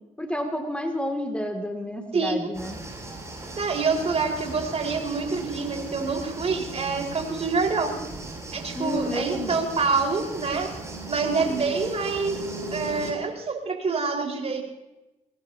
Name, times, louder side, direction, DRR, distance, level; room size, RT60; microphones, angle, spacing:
voice 1, 0.2-2.8 8.8-9.7 12.6-12.7, left 1 dB, 5° left, 4 dB, 2.6 m, -30 dB
sound 1, 2.5-13.1, right 2 dB, 20° right, 7.4 m, -39 dB
sound 2, 2.9-13.1, right 3 dB, 90° right, 2.9 m, -41 dB
voice 2, 3.6-8.0 8.5-10.7 11.1-12.4 12.7-14.6, right 4 dB, 40° right, 1 dB, 4.9 m, -26 dB
23.5 x 20.0 x 2.9 m, 0.99 s
hypercardioid pair, 55°, 16 cm